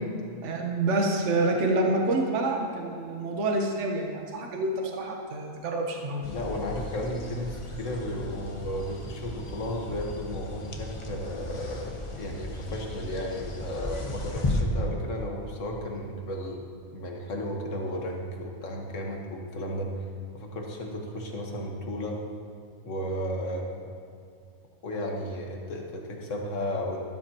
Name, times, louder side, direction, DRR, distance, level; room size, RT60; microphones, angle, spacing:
voice 1, 0.4-6.3, right 2 dB, 65° right, 1 dB, 1.3 m, -27 dB
voice 2, 6.2-16.7 16.9-19.9 20.3-22.2 22.9-23.9 24.8-27.0, equal, 70° left, 0 dB, 1.7 m, -34 dB
sound 1, 6.2-14.6, left 2 dB, 25° left, 0.8 m, -36 dB
13.0 x 13.0 x 2.9 m, 2.4 s
omnidirectional pair, 1.4 m